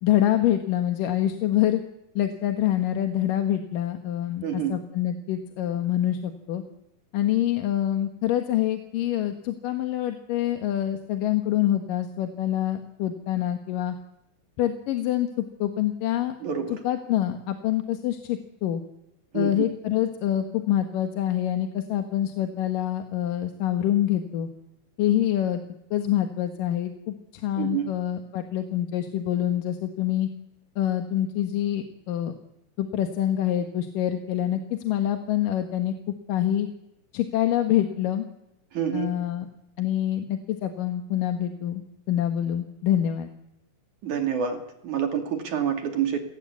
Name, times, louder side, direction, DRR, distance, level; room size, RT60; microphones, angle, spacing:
voice 1, 0.0-1.8 2.2-6.6 7.1-14.0 14.6-16.4 16.8-18.8 19.3-24.5 25.0-25.6 25.9-30.3 30.8-32.3 32.8-36.0 36.3-36.7 37.1-38.3 38.9-39.5 39.8-43.3, left 12 dB, 80° left, 7 dB, 3.0 m, -26 dB
voice 2, 4.4-4.7 16.4-16.8 19.3-19.7 27.6-27.9 38.7-39.1 44.0-46.2, right 8 dB, 65° right, 5 dB, 3.8 m, -28 dB
29.0 x 18.5 x 8.4 m, 0.88 s
omnidirectional pair, 3.8 m